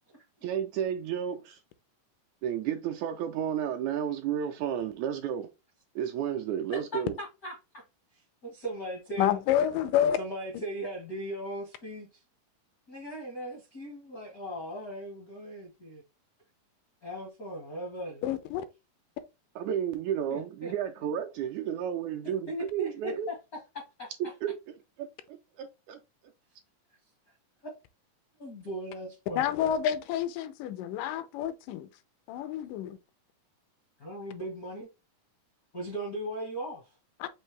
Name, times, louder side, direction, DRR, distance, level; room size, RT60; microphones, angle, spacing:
voice 1, 0.4-1.6 2.4-5.5 6.0-7.1 19.6-23.3 24.4-26.0, right 9 dB, 80° right, 1.7 m, -32 dB
voice 2, 6.7-7.8 8.4-9.4 10.2-12.1 12.9-16.0 17.0-18.2 20.3-20.7 22.5-23.4 23.7-24.1 28.4-29.4 34.0-34.9 35.7-36.9, right 1 dB, 65° left, 0.8 m, -38 dB
voice 3, 9.2-10.2 18.2-18.6 29.4-31.9 32.3-33.0 37.2-37.3, left 10 dB, 85° left, 2.2 m, -28 dB
5.5 x 2.6 x 3.1 m
omnidirectional pair, 3.7 m